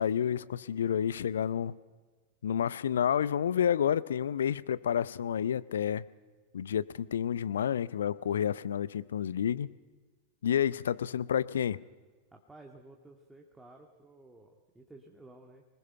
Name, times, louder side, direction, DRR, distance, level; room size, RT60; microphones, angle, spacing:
voice 1, 0.0-1.7 2.4-6.0 6.5-9.7 10.4-11.8, left 9 dB, 65° left, 18 dB, 0.6 m, -29 dB
voice 2, 12.3-15.6, right 2 dB, 10° right, 1 dB, 1.9 m, -54 dB
27.0 x 20.0 x 5.7 m, 1.3 s
figure-of-eight pair, 90°, 0 cm